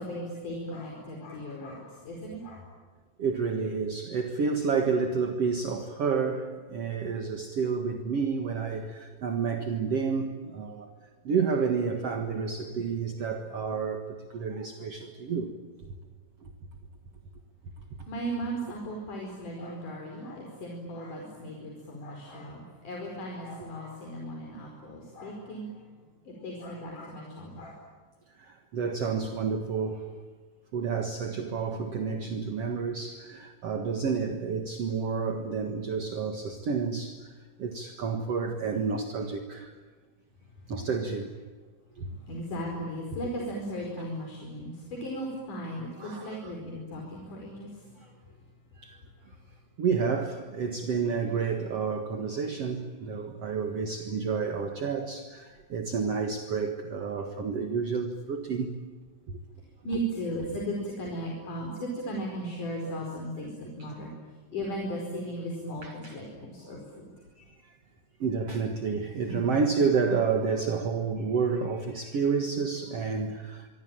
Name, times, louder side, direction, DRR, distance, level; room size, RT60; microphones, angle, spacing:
voice 1, 0.0-2.6 18.1-25.7 26.3-27.8 42.3-48.1 59.8-64.1 64.5-67.1 69.3-69.4, equal, 70° left, 6.4 m, -36 dB
voice 2, 3.2-10.9 11.2-15.5 16.4-16.5 28.4-30.1 30.7-37.3 37.6-39.7 40.7-41.3 42.0-42.1 46.0-46.5 48.8-49.0 49.8-58.7 59.3-59.4 62.8-62.9 63.8-63.9 65.8-66.2 67.4-67.8 68.2-73.7, right 5 dB, 55° right, 2.6 m, -30 dB
25.5 x 25.0 x 9.0 m
omnidirectional pair, 3.8 m